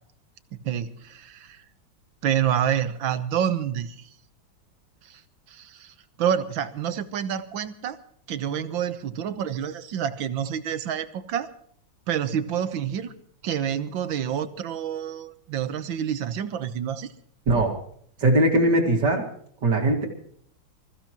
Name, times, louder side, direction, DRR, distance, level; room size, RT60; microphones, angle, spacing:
voice 1, 0.5-1.6 2.2-4.0 5.0-5.2 5.5-8.0 8.3-11.5 12.1-13.1 13.4-17.1, right 9 dB, 85° right, 11 dB, 1.7 m, -28 dB
voice 2, 18.2-19.2 19.6-20.1, right 1 dB, 60° right, 2 dB, 2.9 m, -20 dB
26.0 x 15.0 x 3.0 m, 0.62 s
omnidirectional pair, 2.1 m